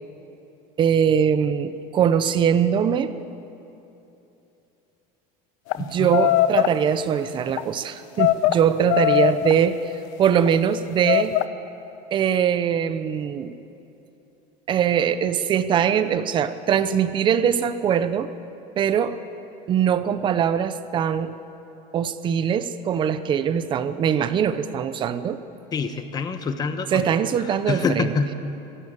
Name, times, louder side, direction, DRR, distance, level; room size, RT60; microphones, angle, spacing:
voice 1, 0.8-3.1 5.8-9.9 10.2-11.3 12.1-13.5 14.7-18.3 18.8-19.2 19.7-21.3 21.9-25.4 26.9-28.1, right 8 dB, 25° right, 12 dB, 0.8 m, -22 dB
sound 1, 5.7-5.8 6.1-6.7 7.4-7.6 8.2-8.6 8.9-9.6 10.3-10.5 11.0-11.4, left 14 dB, 65° left, 0.9 m, -20 dB
voice 2, 5.8-6.1 25.7-27.0 27.7-28.3, left 5 dB, 20° left, 9 dB, 1.1 m, -26 dB
23.5 x 15.5 x 8.8 m, 2.9 s
cardioid pair, 165°, 18 cm